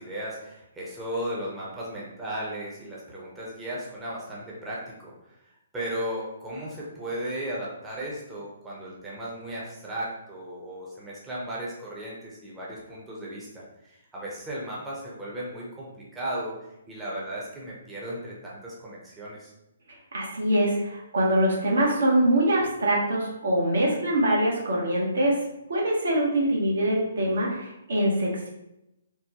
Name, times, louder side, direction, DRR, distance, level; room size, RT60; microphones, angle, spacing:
voice 1, 0.0-19.5, right 1 dB, 10° right, -6 dB, 0.7 m, -36 dB
voice 2, 20.1-25.4 25.7-28.5, right 1 dB, 70° right, -3 dB, 1.0 m, -24 dB
3.6 x 2.1 x 2.9 m, 0.88 s
figure-of-eight pair, 135°, 0 cm